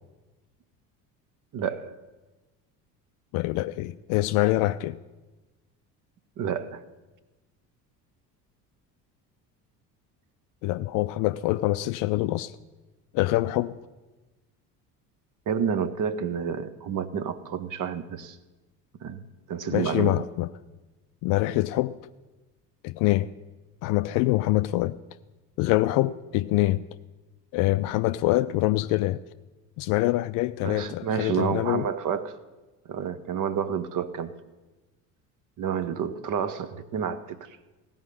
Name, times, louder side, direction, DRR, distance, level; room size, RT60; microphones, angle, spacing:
voice 1, 1.5-2.0 6.4-6.8 15.5-18.4 19.0-19.2 19.5-20.3 30.6-32.4 32.8-34.3 35.6-37.6, right 7 dB, 40° right, 13 dB, 1.0 m, -29 dB
voice 2, 3.3-5.0 10.6-12.6 13.1-13.8 19.7-20.5 21.2-21.9 22.8-23.3 23.8-25.0 25.6-26.8 27.5-29.2 29.8-31.9, left 17 dB, 45° left, 13 dB, 0.4 m, -25 dB
16.0 x 5.4 x 9.9 m, 1.2 s
figure-of-eight pair, 60°, 49 cm